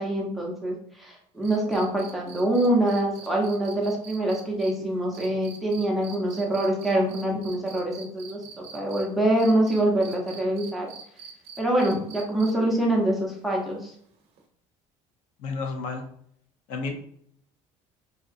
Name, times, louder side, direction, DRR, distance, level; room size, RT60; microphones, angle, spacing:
voice 1, 0.0-10.9 11.6-13.9, right 1 dB, ahead, -2 dB, 0.6 m, -25 dB
sound 1, 1.4-9.0 9.4-12.7 14.4-14.5, right 6 dB, 50° right, 0.7 m, -45 dB
voice 2, 15.4-16.0 16.7-16.9, left 4 dB, 75° left, 4 dB, 0.6 m, -31 dB
3.6 x 2.8 x 2.4 m, 0.65 s
cardioid pair, 165°, 13 cm